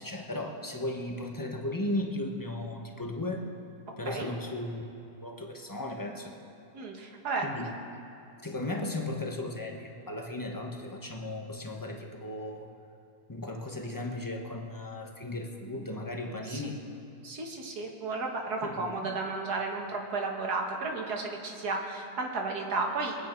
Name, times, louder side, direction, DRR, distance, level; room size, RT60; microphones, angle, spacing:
voice 1, 0.0-3.4 4.0-4.8 5.2-6.3 7.4-7.7 8.4-12.7 13.3-16.8 18.6-19.1, left 1 dB, 15° left, 1 dB, 0.9 m, -36 dB
voice 2, 6.7-7.5 16.5-16.7 17.2-23.3, right 3 dB, 70° right, 1 dB, 2.0 m, -33 dB
22.5 x 9.2 x 4.5 m, 2.8 s
omnidirectional pair, 1.8 m